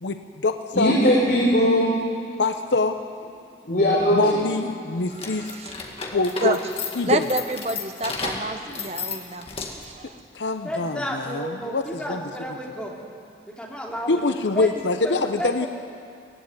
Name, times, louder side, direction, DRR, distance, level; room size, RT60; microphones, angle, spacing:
voice 1, 0.0-1.0 2.4-3.0 4.1-5.5 6.1-6.6 6.9-7.3 10.3-12.2 14.1-15.7, left 3 dB, 90° left, 7 dB, 0.8 m, -24 dB
voice 2, 0.7-1.9 3.7-4.2, equal, 55° left, -5 dB, 3.8 m, -19 dB
sound 1, 5.1-10.0, left 4 dB, 35° left, 1.9 m, -33 dB
voice 3, 5.4-5.7 6.4-6.6 7.0-9.5 9.8-10.2, right 2 dB, 35° right, 7 dB, 1.0 m, -28 dB
voice 4, 10.6-12.9 13.4-14.1 14.5-14.7 15.0-15.7, equal, 5° left, -3 dB, 3.0 m, -32 dB
18.0 x 16.0 x 9.7 m, 2.5 s
head